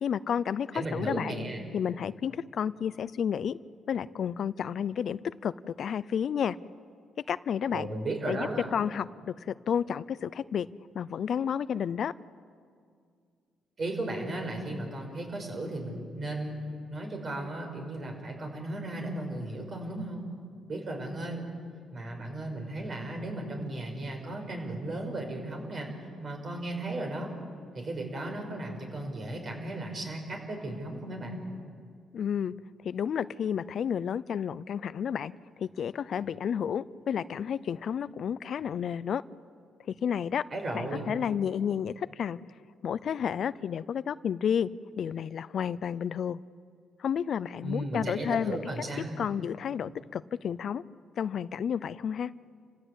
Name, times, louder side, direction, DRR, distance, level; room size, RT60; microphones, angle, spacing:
voice 1, 0.0-1.3 1.7-3.6 3.9-6.6 7.3-7.9 8.3-10.7 10.9-12.1 32.1-32.5 32.8-39.2 39.8-40.4 40.7-42.4 42.8-44.7 45.0-46.4 47.0-48.6 49.2-50.8 51.2-52.3, left 8 dB, 60° left, 17 dB, 0.5 m, -31 dB
voice 2, 0.7-1.6 7.7-8.7 13.8-20.3 20.7-21.5 21.9-25.9 26.2-27.3 27.7-31.5 40.5-41.1 47.6-49.2, right 1 dB, 45° right, 3 dB, 5.8 m, -35 dB
29.5 x 16.0 x 8.2 m, 2.2 s
cardioid pair, 90°, 0 cm